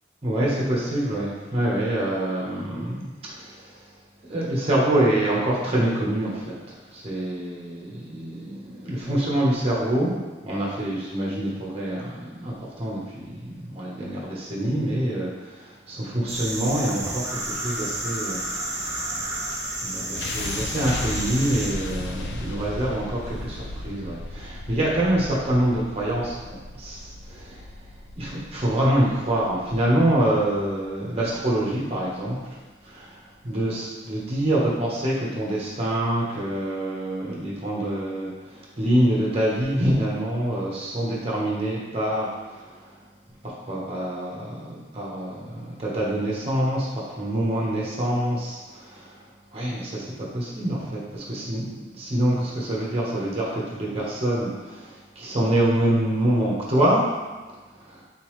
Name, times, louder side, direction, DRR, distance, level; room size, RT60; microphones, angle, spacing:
voice 1, 0.2-3.6 4.3-10.1 10.4-19.2 19.8-27.6 28.2-33.1 33.4-42.7 43.4-49.1 49.5-57.0 57.8-58.0, right 1 dB, 30° right, -5 dB, 1.0 m, -26 dB
sound 1, 16.3-21.7, right 1 dB, 15° right, 0.6 m, -31 dB
sound 2, 20.2-32.2, left 2 dB, 65° left, 0.4 m, -36 dB
4.0 x 3.7 x 3.1 m, 1.2 s
head